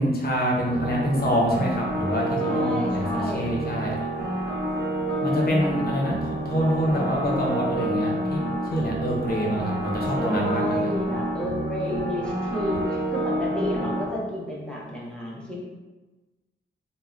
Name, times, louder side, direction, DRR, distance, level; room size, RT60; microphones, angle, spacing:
voice 1, 0.0-4.0 5.2-6.2 6.4-8.4 8.7-10.9, equal, 50° left, -2 dB, 0.6 m, -26 dB
sound 1, 0.6-14.1, right 1 dB, 55° right, 0.7 m, -28 dB
voice 2, 2.4-3.5 5.6-5.7 10.2-15.6, equal, 5° left, -4 dB, 0.6 m, -31 dB
3.4 x 2.1 x 2.3 m, 1.2 s
wide cardioid pair, 130°, 20 cm